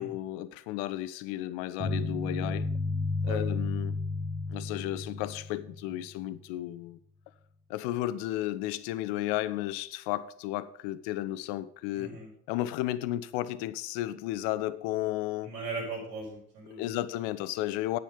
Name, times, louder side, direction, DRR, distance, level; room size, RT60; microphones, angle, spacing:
voice 1, 0.0-2.7 3.2-4.0 4.5-7.0 7.7-12.1 12.5-15.5 16.8-18.0, left 15 dB, 55° left, 0.8 m, -33 dB
sound 1, 1.8-6.0, left 3 dB, 30° right, 3.0 m, -32 dB
voice 2, 11.9-12.3 15.4-16.9, right 3 dB, 75° right, 5.0 m, -38 dB
10.0 x 8.4 x 5.5 m
figure-of-eight pair, 60°, 48 cm